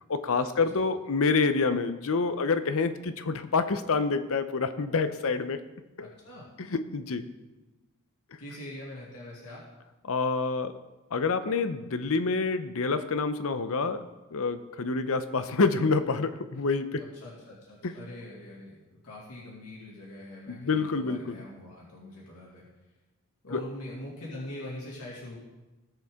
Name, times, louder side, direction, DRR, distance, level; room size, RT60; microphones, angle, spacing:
voice 1, 0.1-5.6 6.0-6.1 6.7-7.3 10.1-10.8 11.1-14.0 14.3-17.1 17.8-17.9 20.5-21.4 23.5-23.6, left 4 dB, 65° left, 11 dB, 0.7 m, -27 dB
voice 2, 6.0-6.5 8.4-9.6 17.2-22.7 23.4-25.4, left 1 dB, 85° left, -5 dB, 2.3 m, -43 dB
18.5 x 6.8 x 3.7 m, 1.1 s
head